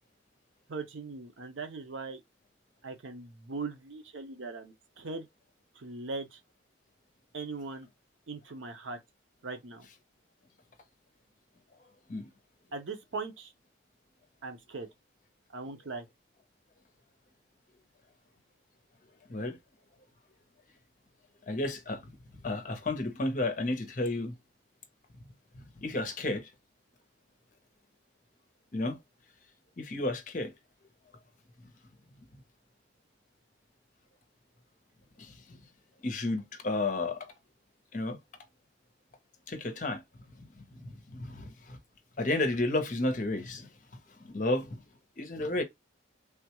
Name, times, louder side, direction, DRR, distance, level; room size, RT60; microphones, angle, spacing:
voice 1, 0.7-2.2 2.8-5.3 5.8-6.4 7.3-7.9 8.3-9.0 9.4-9.9 12.7-13.5 14.4-14.9 15.5-16.1, right 3 dB, 80° right, 0.7 m, -40 dB
voice 2, 21.5-22.1 22.4-24.3 25.5-26.5 28.7-29.0 29.8-30.5 35.2-35.6 36.0-37.3 37.9-38.2 39.5-40.0 40.3-41.8 42.2-43.7 44.1-44.8 45.2-45.6, left 2 dB, 40° left, 0.7 m, -32 dB
3.4 x 2.3 x 2.9 m
head